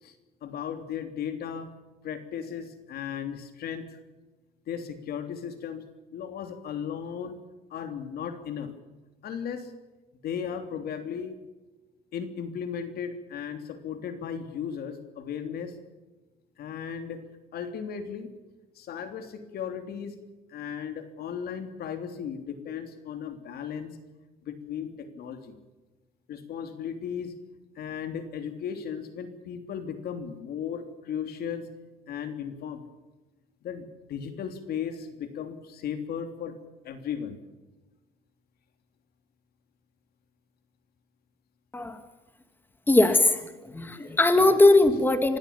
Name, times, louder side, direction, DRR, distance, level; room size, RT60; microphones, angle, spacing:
voice 1, 0.4-1.7 2.0-3.9 4.7-5.8 6.1-7.4 7.7-8.7 9.2-9.7 10.2-11.4 12.1-15.7 16.6-17.2 17.5-18.3 18.7-20.1 20.5-24.0 24.4-25.5 26.3-27.4 27.7-31.6 32.1-32.8 33.6-36.6 36.8-37.4, left 7 dB, 65° left, 8 dB, 3.2 m, -36 dB
voice 2, 42.9-45.4, left 2 dB, 10° left, 8 dB, 2.1 m, -20 dB
26.5 x 16.5 x 7.2 m, 1.2 s
cardioid pair, 110°, 17 cm